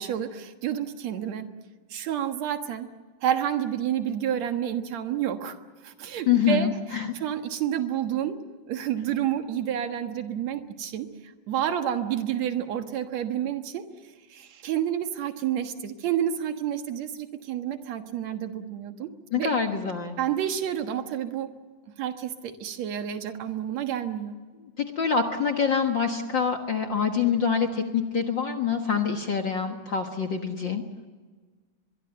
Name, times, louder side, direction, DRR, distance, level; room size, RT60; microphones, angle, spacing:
voice 1, 0.0-1.5 1.9-2.9 3.2-5.6 5.8-6.7 7.1-8.4 8.7-11.1 11.5-13.8 14.3-19.1 19.4-19.6 20.2-21.5 22.0-24.4, right 10 dB, 60° right, 7 dB, 2.5 m, -29 dB
voice 2, 6.3-7.1 19.3-20.2 24.8-30.8, left 6 dB, 50° left, 5 dB, 1.5 m, -25 dB
23.0 x 22.5 x 7.8 m, 1.4 s
omnidirectional pair, 3.9 m